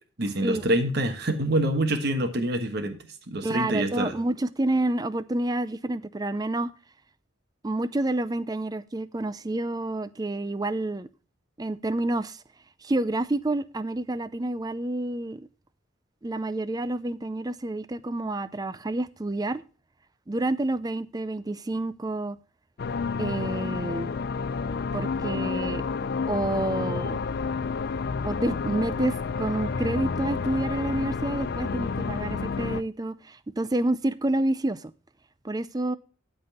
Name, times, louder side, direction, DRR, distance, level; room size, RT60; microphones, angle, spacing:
voice 1, 0.2-3.0 3.3-4.2, right 1 dB, 50° right, 1.4 m, -26 dB
voice 2, 3.4-6.7 7.6-11.1 11.6-12.4 12.8-15.5 16.2-19.6 20.3-22.4 23.2-24.1 24.9-25.8 26.3-27.2 28.2-34.9 35.4-36.0, right 2 dB, 20° right, 0.5 m, -28 dB
sound 1, 22.8-32.8, left 4 dB, 50° left, 0.4 m, -30 dB
12.0 x 4.1 x 6.7 m
head